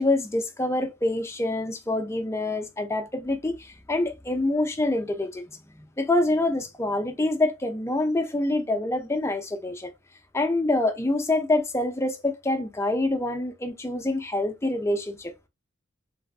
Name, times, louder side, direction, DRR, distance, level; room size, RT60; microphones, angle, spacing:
voice 1, 0.0-5.4 6.0-9.9 10.3-15.5, left 2 dB, 15° left, 0.4 m, -26 dB
3.3 x 2.5 x 2.3 m
head